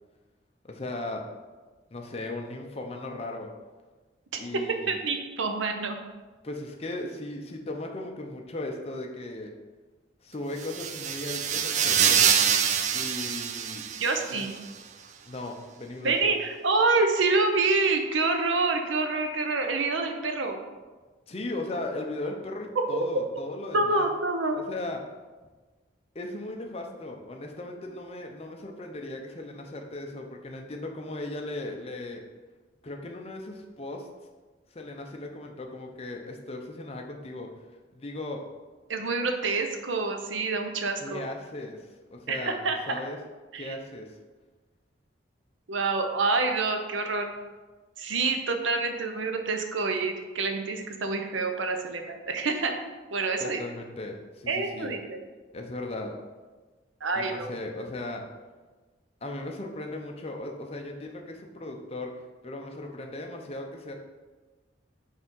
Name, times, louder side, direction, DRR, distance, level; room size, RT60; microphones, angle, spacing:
voice 1, 0.6-1.3 1.9-3.5 4.4-5.0 6.4-9.5 10.2-12.2 12.9-13.8 14.3-14.5 15.3-16.3 21.3-24.1 24.5-25.0 26.1-32.2 32.8-34.1 34.7-37.5 37.9-38.4 41.0-43.2 43.5-44.2 53.4-54.9 55.5-56.2 57.1-58.2 59.2-62.1 62.4-63.9, left 2 dB, 30° left, 2 dB, 0.6 m, -37 dB
voice 2, 4.9-6.0 14.0-14.5 16.0-20.6 23.7-24.6 38.9-41.2 42.3-43.0 43.5-43.7 45.7-47.3 48.0-52.8 53.1-53.6 54.5-55.2 57.0-57.5, right 3 dB, 85° right, 5 dB, 0.7 m, -27 dB
sound 1, 10.6-14.5, right 8 dB, 40° right, 0.3 m, -25 dB
5.2 x 3.4 x 5.4 m, 1.3 s
head